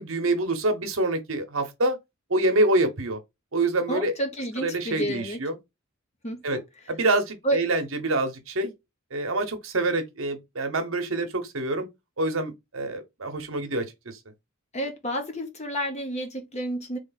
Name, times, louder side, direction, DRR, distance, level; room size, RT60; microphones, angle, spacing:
voice 1, 0.0-2.0 2.3-3.2 3.5-4.1 4.6-5.5 6.4-6.6 6.9-8.7 9.1-11.9 12.2-14.2, right 2 dB, 65° right, 1.1 m, -26 dB
voice 2, 3.9-5.4 6.2-6.6 7.4-7.6 14.7-17.0, right 1 dB, 30° left, 1.0 m, -30 dB
3.3 x 3.3 x 4.0 m
head